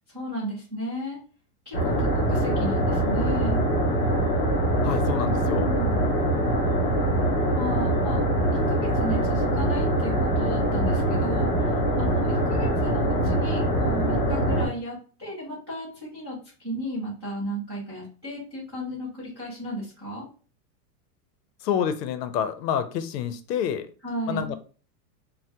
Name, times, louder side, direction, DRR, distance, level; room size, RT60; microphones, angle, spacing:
voice 1, 0.1-1.2 1.7-3.6 5.4-6.0 7.5-8.3 8.7-20.3 24.0-24.5, equal, 20° right, -10 dB, 0.3 m, -34 dB
sound 1, 1.7-14.7, right 1 dB, 20° left, 0.9 m, -23 dB
voice 2, 4.8-5.7 21.6-23.9 24.3-24.6, left 9 dB, 75° left, 11 dB, 0.6 m, -28 dB
2.7 x 2.1 x 3.3 m, 0.39 s
supercardioid pair, 175°, 49 cm